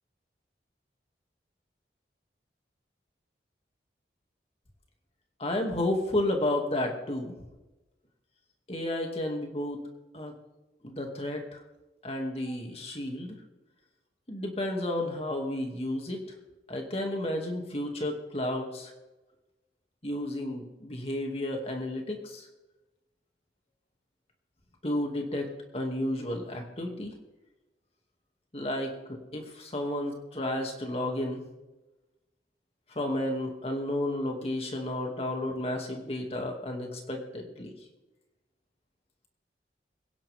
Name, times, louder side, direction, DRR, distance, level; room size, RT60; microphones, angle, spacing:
voice 1, 5.4-7.3 8.7-9.8 10.1-10.3 10.8-11.6 12.0-13.4 14.3-16.2 16.7-18.9 20.0-22.5 24.8-27.1 28.5-31.4 32.9-37.7, left 1 dB, 35° left, 2 dB, 2.4 m, -32 dB
23.5 x 10.5 x 3.6 m, 1.1 s
head